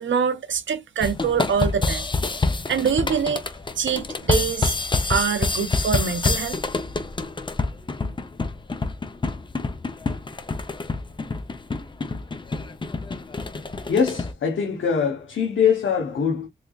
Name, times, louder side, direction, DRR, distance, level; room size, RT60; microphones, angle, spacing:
voice 1, 0.0-2.0 2.7-3.4 3.8-4.7 5.1-6.6, right 7 dB, 75° right, 0.6 m, -24 dB
sound 1, 1.0-14.3, left 3 dB, 25° left, 0.5 m, -27 dB
voice 2, 13.5-16.5, left 6 dB, 80° left, 0.8 m, -23 dB
3.5 x 3.2 x 2.3 m
wide cardioid pair, 110°, 20 cm